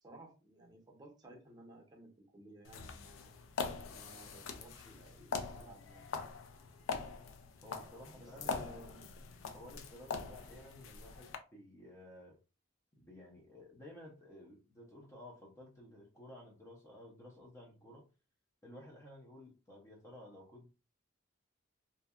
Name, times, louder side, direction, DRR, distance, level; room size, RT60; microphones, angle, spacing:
voice 1, 0.0-3.4 3.9-6.1 8.1-9.2, right 1 dB, 20° right, 0 dB, 0.7 m, -56 dB
sound 1, 2.6-11.4, left 5 dB, 85° left, 0.4 m, -43 dB
voice 2, 7.6-8.6 9.5-12.4 13.0-18.1 18.6-20.7, left 1 dB, 15° left, -2 dB, 0.5 m, -54 dB
2.7 x 2.2 x 2.3 m, 0.32 s
head